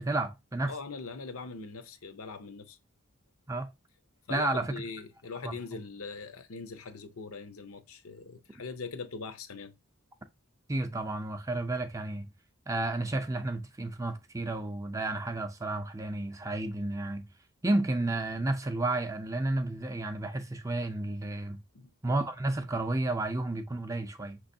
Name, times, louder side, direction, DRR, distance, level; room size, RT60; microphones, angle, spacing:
voice 1, 0.0-0.7 3.5-3.7 4.3-4.7 5.4-5.6 10.7-12.3 12.7-17.3 17.6-21.6 22.0-24.4, right 2 dB, 15° right, 0.4 m, -31 dB
voice 2, 0.7-2.8 4.3-9.7 21.7-21.9, left 4 dB, 85° left, 0.7 m, -41 dB
6.0 x 3.0 x 2.7 m
head